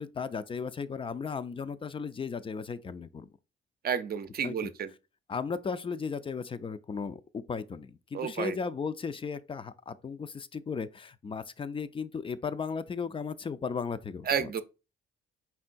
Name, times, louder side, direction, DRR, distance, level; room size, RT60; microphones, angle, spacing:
voice 1, 0.0-3.3 4.4-4.7 5.3-14.6, left 5 dB, 25° left, 0.4 m, -36 dB
voice 2, 3.8-4.9 8.1-8.5 14.3-14.6, right 7 dB, 50° right, 0.5 m, -31 dB
4.5 x 3.7 x 2.5 m
cardioid pair, 90°, 20 cm